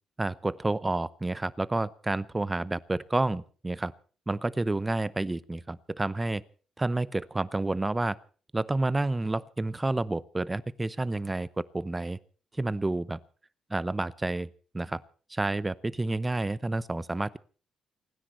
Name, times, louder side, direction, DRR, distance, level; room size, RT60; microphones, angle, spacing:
voice 1, 0.2-3.9 4.3-6.4 6.8-8.2 8.5-12.2 12.6-13.2 13.7-14.5 14.7-15.0 15.3-17.4, right 2 dB, 15° right, 18 dB, 0.8 m, -29 dB
29.0 x 10.0 x 4.4 m, 0.40 s
cardioid pair, 80°, 0 cm